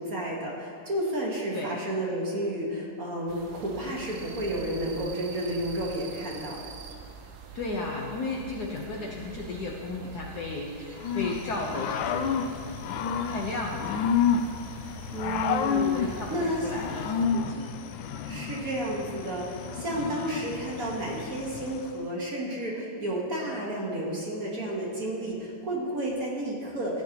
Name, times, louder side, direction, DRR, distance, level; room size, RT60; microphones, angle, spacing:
voice 1, 0.0-6.6 15.1-16.6 18.3-27.0, right 1 dB, 45° right, -3 dB, 1.6 m, -31 dB
sound 1, 3.3-17.3, right 4 dB, 65° right, 1.0 m, -45 dB
voice 2, 7.5-12.8 13.3-14.0 15.2-15.5 15.9-17.8, left 3 dB, 60° left, -2 dB, 1.2 m, -35 dB
Growling / Cricket, 11.0-21.9, left 7 dB, 75° left, 1.2 m, -30 dB
14.5 x 9.1 x 2.9 m, 2.3 s
omnidirectional pair, 2.4 m